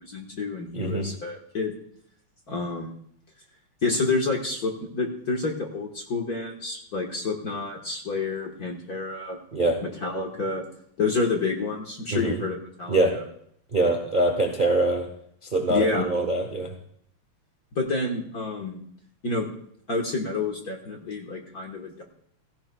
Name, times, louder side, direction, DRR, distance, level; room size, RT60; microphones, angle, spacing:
voice 1, 0.0-1.7 2.5-2.9 3.8-9.4 9.8-10.6 11.0-13.2 15.7-16.1 17.7-18.8 19.2-19.5 19.9-22.0, left 3 dB, 45° left, 1 dB, 1.4 m, -29 dB
voice 2, 0.7-1.1 9.5-9.8 12.1-12.4 12.9-13.2 13.7-15.1 15.4-16.7, right 2 dB, 40° right, 3 dB, 0.6 m, -24 dB
16.5 x 16.0 x 2.3 m, 0.68 s
omnidirectional pair, 3.3 m